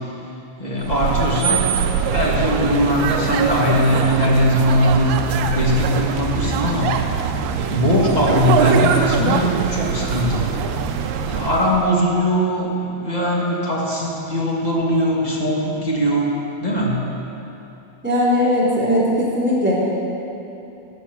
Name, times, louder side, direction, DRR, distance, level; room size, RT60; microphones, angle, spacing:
voice 1, 0.6-1.7 2.1-6.9 7.7-10.5 11.2-16.3 16.6-17.1, equal, 20° left, -4 dB, 1.1 m, -20 dB
sound 1, 0.8-11.9, right 7 dB, 85° right, 2.2 m, -23 dB
voice 2, 18.0-19.9, left 1 dB, 5° right, -9 dB, 2.8 m, -18 dB
16.5 x 6.0 x 7.0 m, 3.0 s
omnidirectional pair, 3.4 m